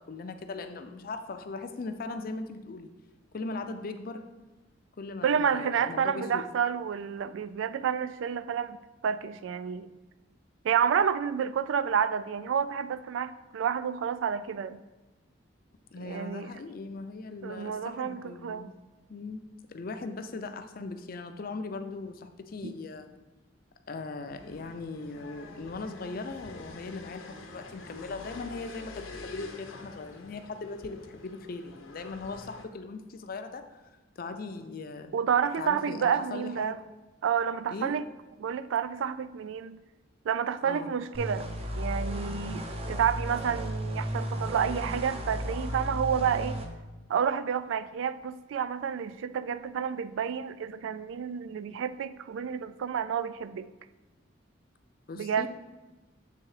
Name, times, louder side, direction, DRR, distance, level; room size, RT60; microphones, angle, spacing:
voice 1, 0.0-2.9 3.3-4.2 5.0-6.4 15.9-18.7 19.1-19.4 19.7-23.1 23.9-33.6 34.2-35.1 35.6-36.8 37.7-37.9 40.6-40.9 55.1-55.5, left 3 dB, 45° left, 7 dB, 0.5 m, -39 dB
voice 2, 5.2-8.8 9.0-9.9 10.6-14.8 16.0-16.5 17.4-18.7 22.6-22.7 35.1-36.8 37.2-38.1 38.4-39.8 40.3-41.5 41.8-46.6 47.1-53.7 55.2-55.5, right 7 dB, 75° right, 13 dB, 0.3 m, -29 dB
sound 1, 24.3-32.6, left 3 dB, 90° left, 0.9 m, -47 dB
sound 2, 41.1-46.7, equal, 30° right, 0.6 m, -34 dB
7.6 x 3.5 x 4.8 m, 1.1 s
head